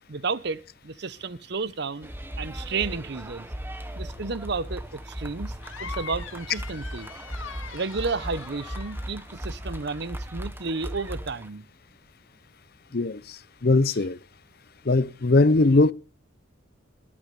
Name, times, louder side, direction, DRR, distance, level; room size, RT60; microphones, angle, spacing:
voice 1, 0.1-2.1 2.4-3.5 4.0-5.5 5.8-7.1 7.7-11.6, right 4 dB, 55° right, 0.8 m, -32 dB
sound 1, 2.0-11.5, right 1 dB, 10° right, 1.1 m, -37 dB
sound 2, 5.6-10.0, left 6 dB, 85° left, 2.0 m, -43 dB
voice 2, 12.9-14.2 14.9-15.9, left 2 dB, 50° left, 0.7 m, -20 dB
20.5 x 8.8 x 5.3 m
head